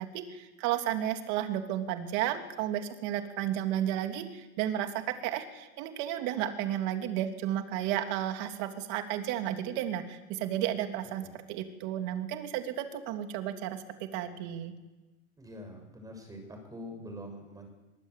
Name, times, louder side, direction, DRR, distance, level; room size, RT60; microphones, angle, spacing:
voice 1, 0.0-14.7, right 11 dB, 45° right, 6 dB, 2.9 m, -33 dB
voice 2, 15.4-17.7, equal, 10° right, 5 dB, 6.4 m, -45 dB
23.0 x 22.5 x 8.3 m, 1.1 s
supercardioid pair, 150°, 42 cm